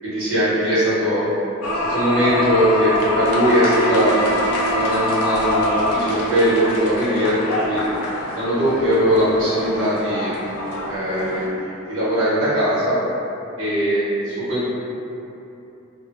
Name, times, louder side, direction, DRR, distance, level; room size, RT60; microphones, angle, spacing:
voice 1, 0.0-1.2 1.9-4.2 4.7-7.4 7.6-7.8 8.3-10.4 10.9-13.0 13.6-14.7, equal, 75° right, -11 dB, 1.0 m, -20 dB
sound 1, 1.6-11.5, left 1 dB, 90° left, 0.4 m, -24 dB
2.7 x 2.0 x 2.5 m, 2.8 s
head